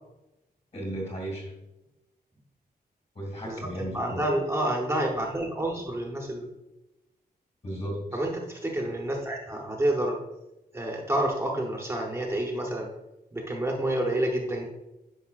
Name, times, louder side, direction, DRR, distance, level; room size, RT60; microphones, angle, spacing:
voice 1, 0.7-1.5 3.1-4.2 7.6-8.2, right 1 dB, 40° left, -1 dB, 2.3 m, -35 dB
voice 2, 3.9-6.5 8.1-10.2 10.7-12.9 13.3-14.7, right 1 dB, 15° right, -1 dB, 0.8 m, -28 dB
9.7 x 5.5 x 2.4 m, 0.94 s
wide cardioid pair, 170°, 16 cm